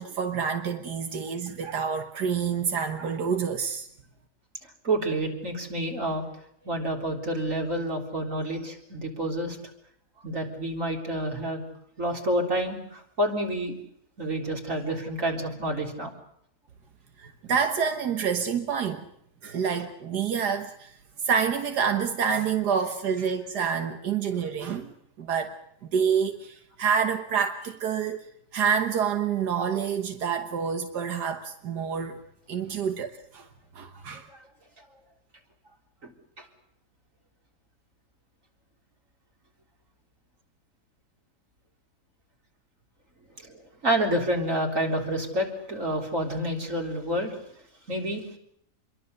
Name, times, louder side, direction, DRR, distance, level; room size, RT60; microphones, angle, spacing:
voice 1, 0.0-3.9 17.2-19.1 19.4-20.9 21.2-24.9 25.2-25.5 25.9-28.2 28.5-32.2 32.5-33.1 33.3-33.5 33.8-34.3, right 7 dB, 90° right, 6 dB, 1.9 m, -27 dB
voice 2, 4.8-6.2 6.6-9.6 10.2-11.6 12.0-13.8 14.2-16.1 34.3-34.4 36.0-36.1 36.4-36.5 43.4-47.3 47.9-48.4, right 1 dB, 50° right, 2 dB, 4.3 m, -29 dB
27.0 x 22.5 x 6.7 m, 0.73 s
omnidirectional pair, 1.7 m